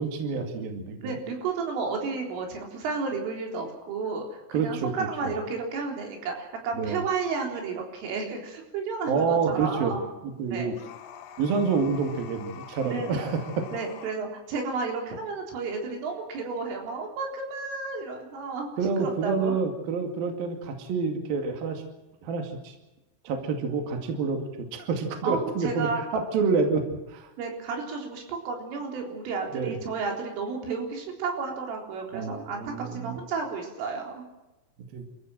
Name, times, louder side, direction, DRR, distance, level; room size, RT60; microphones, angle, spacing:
voice 1, 0.0-1.2 4.5-5.1 6.7-7.0 9.1-10.0 10.2-10.7 11.4-13.7 18.8-21.8 22.2-22.7 23.2-27.3 29.5-29.8 32.1-33.2 34.9-35.1, right 5 dB, 55° right, 4 dB, 3.7 m, -28 dB
voice 2, 1.0-10.1 10.5-10.8 12.8-13.1 13.7-18.7 19.0-19.6 25.2-26.0 27.4-34.2, right 4 dB, 80° right, 2 dB, 6.4 m, -32 dB
sound 1, 10.7-14.2, left 8 dB, 85° left, 4.0 m, -45 dB
28.5 x 15.0 x 7.7 m, 1.0 s
omnidirectional pair, 5.7 m